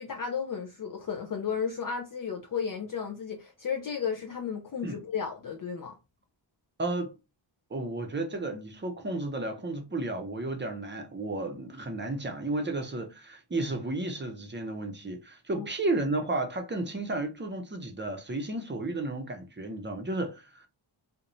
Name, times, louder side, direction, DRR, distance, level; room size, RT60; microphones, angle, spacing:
voice 1, 0.0-5.9 15.5-15.7, left 6 dB, 45° left, 0.5 m, -33 dB
voice 2, 6.8-7.2 7.7-20.7, right 2 dB, 25° right, 0.6 m, -33 dB
2.5 x 2.1 x 3.0 m
wide cardioid pair, 85°, 46 cm